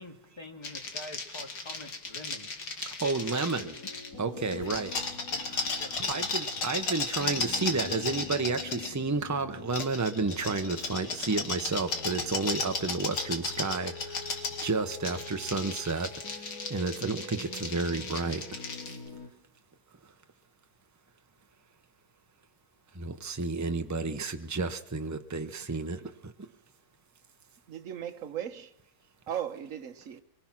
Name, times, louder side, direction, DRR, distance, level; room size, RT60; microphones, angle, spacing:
voice 1, 0.0-2.5 3.3-3.7 4.5-4.8 5.3-5.4 5.8-6.7, left 1 dB, 15° left, 2.1 m, -46 dB
sound 1, 0.6-4.1 4.5-8.9 9.7-19.0, left 4 dB, 80° left, 2.5 m, -35 dB
voice 2, 2.8-3.7 4.2-4.9 5.5-16.1 16.7-18.4 22.9-26.3, right 3 dB, 15° right, 0.8 m, -31 dB
sound 2, 3.4-19.3, left 4 dB, 60° left, 3.7 m, -46 dB
voice 3, 27.7-28.7 29.3-30.2, right 9 dB, 55° right, 1.4 m, -37 dB
23.5 x 22.5 x 6.1 m
omnidirectional pair, 1.7 m